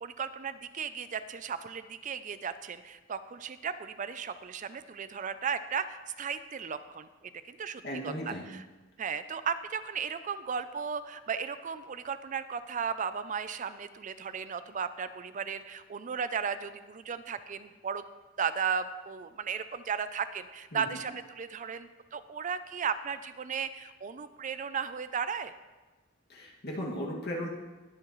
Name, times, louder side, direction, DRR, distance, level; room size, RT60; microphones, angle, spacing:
voice 1, 0.0-7.1 7.5-8.7 9.0-18.1 18.4-25.5, right 6 dB, 40° right, 12 dB, 0.4 m, -35 dB
voice 2, 7.8-8.5 20.7-20.8 26.3-27.5, equal, 55° left, -2 dB, 2.1 m, -36 dB
20.5 x 7.3 x 3.1 m, 1.2 s
head